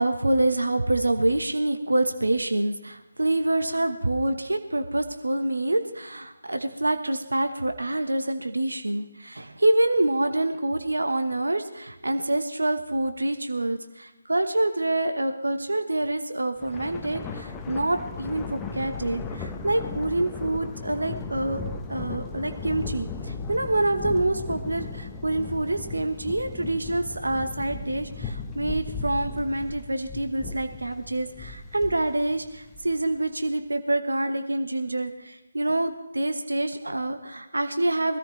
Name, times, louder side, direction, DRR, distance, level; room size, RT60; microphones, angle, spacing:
voice 1, 0.0-21.6 21.9-38.2, right 1 dB, 90° right, 8 dB, 1.3 m, -26 dB
Thunder, 16.6-33.2, left 4 dB, 10° left, 0.9 m, -36 dB
22.5 x 13.5 x 3.3 m, 0.99 s
figure-of-eight pair, 155°, 0 cm